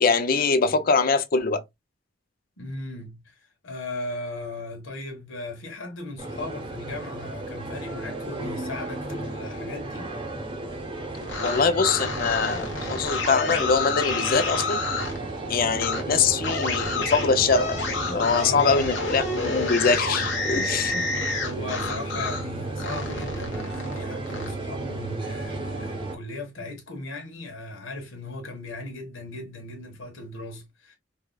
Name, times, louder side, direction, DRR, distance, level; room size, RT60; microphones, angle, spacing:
voice 1, 0.0-1.6 11.4-14.8 15.5-21.1, left 4 dB, 45° left, 0.5 m, -23 dB
voice 2, 2.6-3.2 3.6-10.1 18.3-18.9 21.4-31.0, left 2 dB, 85° left, 1.4 m, -37 dB
sound 1, 6.2-26.2, right 2 dB, 25° right, 0.8 m, -33 dB
sound 2, 11.1-15.2 15.7-16.0 16.4-22.5 22.8-24.5, left 3 dB, 65° left, 1.0 m, -30 dB
4.8 x 2.4 x 2.2 m
head